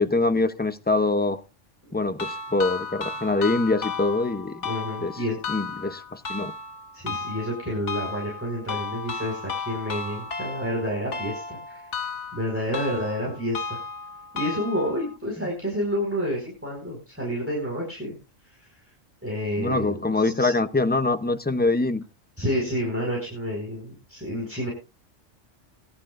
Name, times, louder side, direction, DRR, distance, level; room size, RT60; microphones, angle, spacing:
voice 1, 0.0-1.4 1.9-4.7 5.0-5.1 5.5-6.5 19.6-22.0, left 2 dB, 10° left, 0.5 m, -24 dB
sound 1, 2.2-15.2, left 4 dB, 65° left, 1.5 m, -34 dB
voice 2, 4.6-5.4 5.7-5.8 6.9-12.0 12.3-13.8 14.3-18.1 18.6-18.8 19.2-20.5 22.4-24.7, equal, 10° right, 4.8 m, -29 dB
20.5 x 11.5 x 2.6 m
omnidirectional pair, 1.3 m